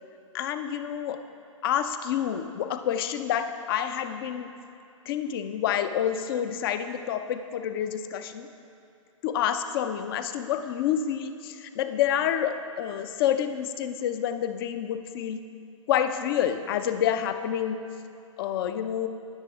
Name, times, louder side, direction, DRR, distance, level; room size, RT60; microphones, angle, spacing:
voice 1, 0.3-1.2 1.6-4.5 5.1-8.5 9.2-15.4 15.9-17.8 18.4-19.1, left 9 dB, 45° left, 10 dB, 0.7 m, -28 dB
18.5 x 6.7 x 3.6 m, 2.6 s
figure-of-eight pair, 120°, 17 cm